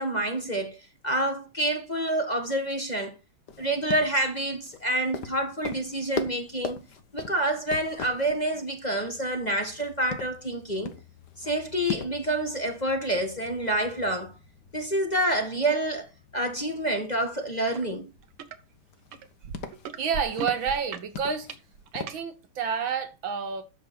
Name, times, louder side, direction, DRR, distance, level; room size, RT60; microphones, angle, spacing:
voice 1, 0.0-3.1 3.6-6.8 7.1-10.9 11.4-14.3 14.7-16.1 16.3-18.1, right 1 dB, 20° left, 1.7 m, -28 dB
sound 1, 3.5-22.2, left 5 dB, 55° left, 1.8 m, -42 dB
sound 2, 17.7-17.9 18.2-18.6 19.1-22.2 22.9-23.0, right 8 dB, 85° right, 2.0 m, -38 dB
voice 2, 20.0-21.5 21.9-23.6, right 6 dB, 65° right, 2.1 m, -29 dB
10.5 x 7.5 x 4.3 m
omnidirectional pair, 2.4 m